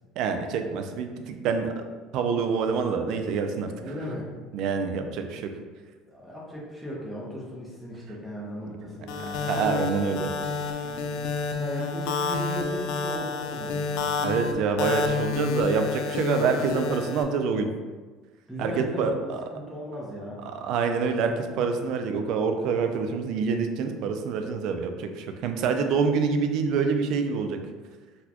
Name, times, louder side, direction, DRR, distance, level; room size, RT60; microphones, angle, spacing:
voice 1, 0.2-1.8 2.1-3.7 4.5-5.5 9.5-10.3 14.2-17.7 18.6-19.4 20.5-27.6, right 5 dB, 65° right, 6 dB, 0.4 m, -26 dB
voice 2, 3.8-4.4 6.0-9.5 10.8-11.2 11.6-14.1 18.5-19.2 19.5-20.5, equal, ahead, -5 dB, 0.7 m, -36 dB
sound 1, 9.1-17.2, left 4 dB, 80° left, 0.3 m, -29 dB
4.0 x 2.2 x 2.9 m, 1.4 s
cardioid pair, 130°, 0 cm